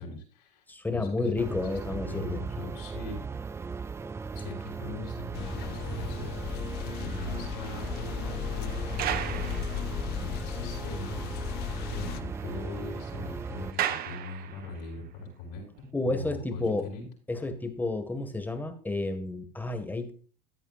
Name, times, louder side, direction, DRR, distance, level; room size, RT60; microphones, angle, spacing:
voice 1, 0.0-0.6 0.9-1.6 2.0-3.2 4.3-9.7 10.1-11.5 11.9-17.0, left 3 dB, 80° left, -3 dB, 5.3 m, -41 dB
voice 2, 0.7-2.4 15.9-16.9 17.3-20.1, left 2 dB, 10° left, 8 dB, 1.7 m, -31 dB
sound 1, 1.4-13.7, right 5 dB, 15° right, 0.3 m, -37 dB
sound 2, 5.3-12.2, left 11 dB, 50° left, 0.8 m, -36 dB
sound 3, 6.8-10.5 10.9-11.0 11.3-11.4 11.7-15.0 15.6-15.8, right 10 dB, 45° right, 1.2 m, -38 dB
14.0 x 8.9 x 2.5 m, 0.40 s
supercardioid pair, 115°, 21 cm